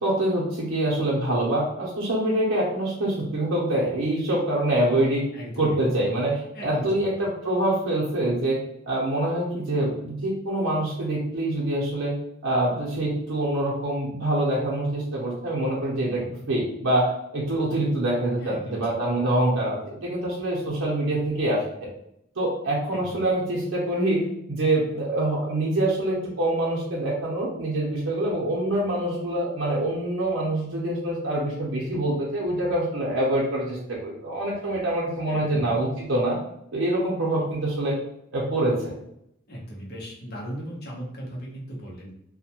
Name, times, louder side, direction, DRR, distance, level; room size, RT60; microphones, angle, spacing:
voice 1, 0.0-5.2 5.6-8.6 8.9-12.1 12.4-16.2 16.5-21.9 22.4-24.2 24.5-36.4 36.7-37.9 38.3-39.0, right 1 dB, 90° right, -5 dB, 0.7 m, -25 dB
voice 2, 5.3-5.8 6.5-7.1 15.8-16.3 18.4-18.8 22.9-23.3 35.3-35.7 39.5-42.1, equal, 50° left, -4 dB, 0.8 m, -37 dB
2.3 x 2.1 x 2.8 m, 0.76 s
head